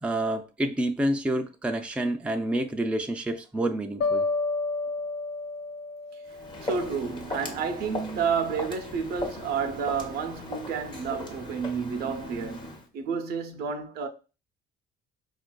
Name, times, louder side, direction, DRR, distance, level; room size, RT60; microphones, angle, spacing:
voice 1, 0.0-4.2, right 1 dB, 5° right, 0.4 m, -28 dB
sound 1, 4.0-7.1, left 3 dB, 70° left, 0.5 m, -30 dB
Walk footsteps, 6.3-12.9, left 2 dB, 30° left, 0.9 m, -38 dB
voice 2, 6.6-14.1, right 6 dB, 70° right, 0.6 m, -30 dB
4.3 x 2.4 x 2.2 m
cardioid pair, 110°, 17 cm